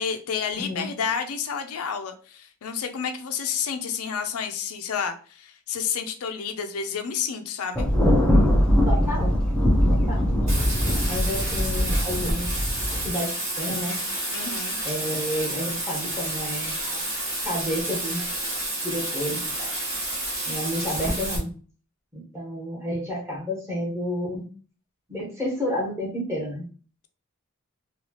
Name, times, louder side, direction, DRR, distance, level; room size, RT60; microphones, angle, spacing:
voice 1, 0.0-7.9 14.3-14.8, left 7 dB, 80° left, 7 dB, 0.4 m, -30 dB
voice 2, 0.5-0.9 8.8-9.4 9.9-10.3 11.1-12.5 13.0-14.0 14.8-17.0 17.4-18.2 18.8-20.1 20.5-21.5 22.1-24.4 25.1-26.7, equal, 10° right, -5 dB, 1.3 m, -30 dB
Thunder, 7.8-13.1, equal, 5° left, 0.5 m, -21 dB
Bathtub (filling or washing), 10.5-21.4, right 1 dB, 30° right, 1.2 m, -30 dB
3.1 x 2.3 x 2.8 m, 0.39 s
head